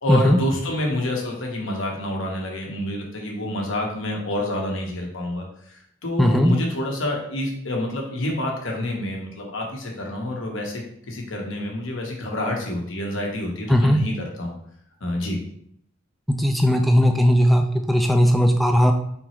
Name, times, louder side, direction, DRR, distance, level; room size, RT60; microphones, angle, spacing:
voice 1, 0.0-14.5 15.0-15.4, left 1 dB, 70° left, 0 dB, 1.1 m, -28 dB
voice 2, 6.2-6.5 13.7-14.0 16.4-18.9, equal, ahead, 3 dB, 0.4 m, -17 dB
3.8 x 3.0 x 4.4 m, 0.69 s
head